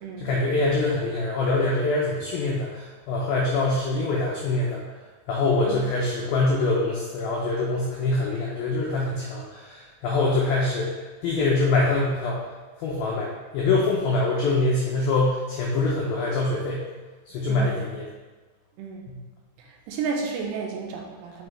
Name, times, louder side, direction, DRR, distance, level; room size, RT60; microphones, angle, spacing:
voice 1, 0.2-4.8 5.3-12.5 12.8-16.9 17.3-18.1, left 2 dB, 85° left, -3 dB, 2.1 m, -24 dB
voice 2, 19.6-21.5, right 5 dB, 80° right, 0 dB, 2.8 m, -32 dB
7.1 x 5.5 x 3.3 m, 1.3 s
omnidirectional pair, 5.3 m